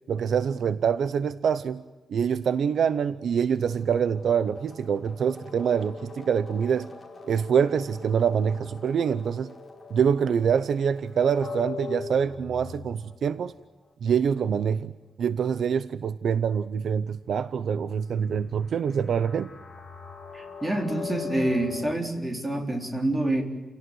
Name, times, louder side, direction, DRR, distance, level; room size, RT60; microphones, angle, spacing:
voice 1, 0.1-1.8 2.1-6.9 7.2-9.5 9.9-13.5 14.0-14.9 15.2-19.5, right 7 dB, 65° right, 14 dB, 0.7 m, -25 dB
sound 1, 3.4-13.5 18.7-21.9, left 5 dB, 15° left, 5.3 m, -41 dB
voice 2, 20.3-23.4, right 1 dB, 15° right, 2 dB, 3.9 m, -27 dB
29.5 x 17.5 x 9.3 m, 1.2 s
wide cardioid pair, 175°, 0 cm